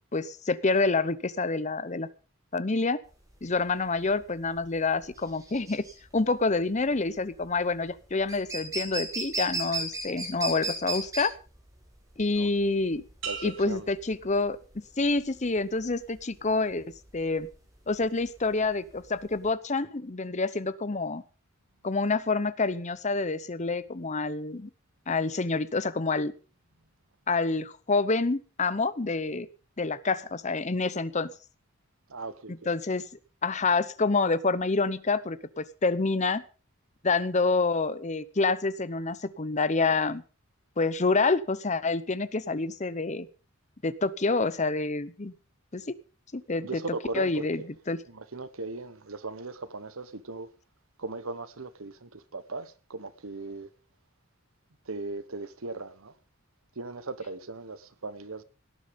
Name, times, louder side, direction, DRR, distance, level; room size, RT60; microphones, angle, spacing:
voice 1, 0.0-2.1 2.5-3.0 3.4-5.9 6.1-11.3 12.2-13.0 13.4-17.5 17.9-21.2 21.8-24.7 25.1-26.3 27.3-29.5 29.8-31.3 32.7-33.0 33.4-36.4 37.0-40.2 40.8-43.3 43.8-45.3 45.7-45.9 46.3-46.8 47.1-47.6 47.9-48.0, left 3 dB, 35° left, 0.8 m, -27 dB
sound 1, 3.1-19.5, right 2 dB, 15° right, 4.7 m, -36 dB
sound 2, 13.2-15.0 15.5-16.0, right 7 dB, 60° right, 4.2 m, -42 dB
voice 2, 13.2-13.9 32.1-32.7 46.6-47.7 48.1-50.5 51.0-53.7 54.8-56.2 56.7-58.4, right 3 dB, 85° right, 1.2 m, -38 dB
17.5 x 10.0 x 5.3 m
head